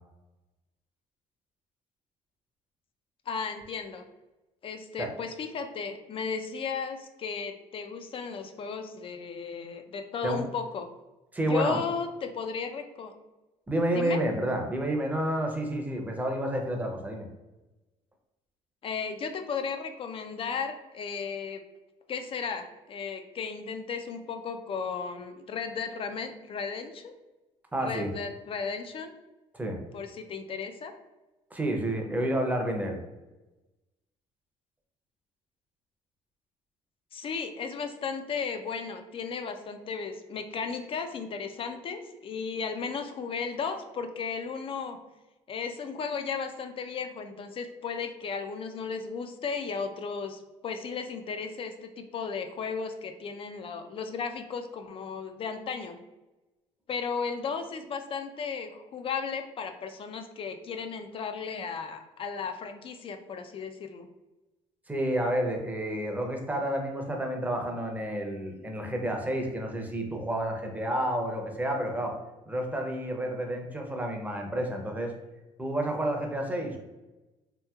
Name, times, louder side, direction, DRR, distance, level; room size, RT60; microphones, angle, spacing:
voice 1, 3.3-4.0 4.6-10.9 11.5-13.1 13.9-14.2 18.8-21.6 22.1-27.1 27.8-29.1 29.9-30.9 37.1-45.0 45.5-56.0 56.9-64.1, left 5 dB, 45° left, 7 dB, 0.3 m, -35 dB
voice 2, 11.3-11.8 13.7-17.3 27.7-28.1 29.5-29.8 31.5-33.0 64.9-72.1 72.5-75.1 75.6-76.8, right 1 dB, 10° right, 2 dB, 0.6 m, -30 dB
2.8 x 2.7 x 2.3 m, 1.1 s
cardioid pair, 95°, 13 cm